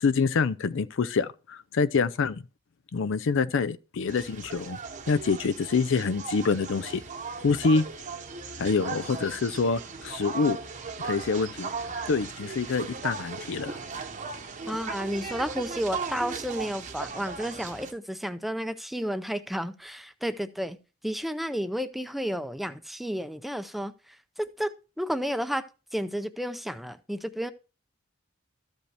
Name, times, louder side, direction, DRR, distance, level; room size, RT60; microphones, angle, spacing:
voice 1, 0.0-2.4 2.9-4.8 5.1-7.0 7.4-7.9 8.6-10.6 11.0-11.7 12.1-13.8, left 4 dB, 70° left, 0.5 m, -26 dB
sound 1, 4.1-17.9, right 5 dB, 40° right, 0.9 m, -37 dB
voice 2, 14.7-20.8 21.0-25.7 25.9-27.5, equal, ahead, 0.5 m, -32 dB
13.5 x 5.2 x 3.3 m
head